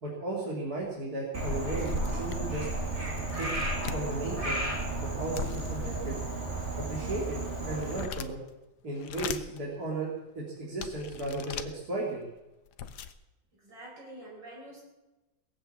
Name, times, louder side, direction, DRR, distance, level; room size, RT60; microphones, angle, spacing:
voice 1, 0.0-2.7 3.3-3.5 3.8-4.6 5.2-6.2 6.9-7.4 7.6-8.4 8.8-11.6 11.9-12.2, right 2 dB, 50° right, -4 dB, 3.3 m, -35 dB
sound 1, 0.8-0.9 1.4-1.5 1.7-2.7 3.2-4.1 5.4-6.4 7.0-8.5 8.9-9.6 10.2-10.3 10.8-11.7 12.4-12.5 12.7-13.1, left 8 dB, 65° left, 1.3 m, -40 dB
Frog, 1.3-8.1, right 2 dB, 35° right, 2.9 m, -33 dB
voice 2, 13.6-14.8, right 1 dB, 70° right, -3 dB, 5.6 m, -46 dB
19.0 x 7.7 x 8.3 m, 1.0 s
omnidirectional pair, 2.0 m